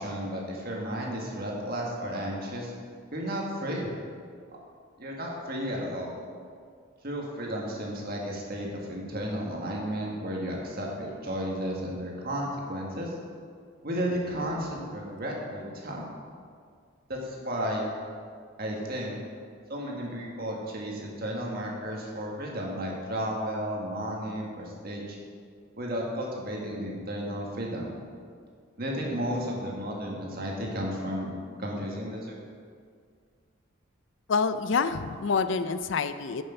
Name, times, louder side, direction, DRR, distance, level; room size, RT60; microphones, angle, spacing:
voice 1, 0.0-2.7 3.1-3.9 5.0-6.2 7.0-13.1 13.8-16.1 17.1-17.9 18.6-19.2 19.7-25.2 25.8-27.9 28.8-31.3 31.6-32.4, equal, 45° right, -2 dB, 1.8 m, -33 dB
voice 2, 34.3-36.4, left 5 dB, 60° left, 12 dB, 0.4 m, -27 dB
9.6 x 6.6 x 5.8 m, 2.1 s
head